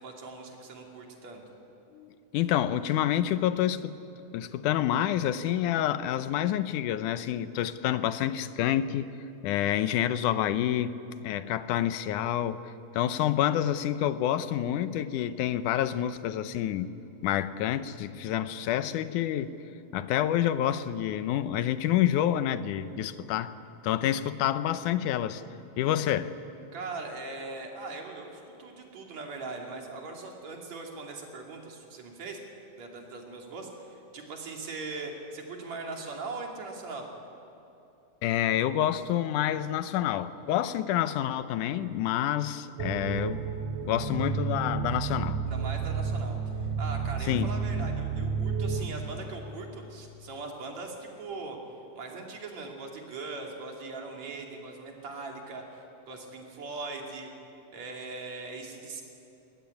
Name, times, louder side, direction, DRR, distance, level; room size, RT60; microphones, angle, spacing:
voice 1, 0.0-1.4 26.7-32.4 32.8-37.1 45.5-51.6 52.0-57.3 57.7-59.0, right 3 dB, 60° right, 1 dB, 3.9 m, -40 dB
voice 2, 1.9-4.0 4.3-9.1 9.4-11.0 11.2-12.6 12.9-16.9 17.2-19.5 19.9-23.5 23.8-25.4 25.8-26.3 38.2-43.5 43.8-45.4 47.3-47.5, left 11 dB, 85° left, 12 dB, 2.3 m, -28 dB
sound 1, 42.8-48.9, right 6 dB, 75° right, 3.3 m, -31 dB
22.0 x 19.5 x 9.7 m, 2.9 s
omnidirectional pair, 3.5 m